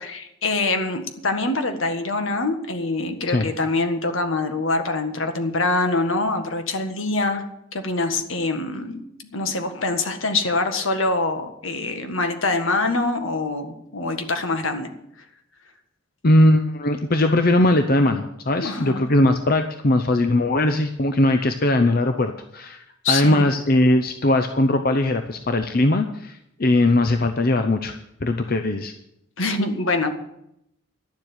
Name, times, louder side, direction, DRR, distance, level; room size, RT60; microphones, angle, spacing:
voice 1, 0.0-7.4 7.7-14.9 18.6-19.0 23.0-23.5 29.4-30.1, left 2 dB, 75° left, 7 dB, 1.6 m, -24 dB
voice 2, 16.2-27.9 28.2-28.9, left 1 dB, 45° left, 7 dB, 0.7 m, -20 dB
11.5 x 7.5 x 9.4 m, 0.80 s
head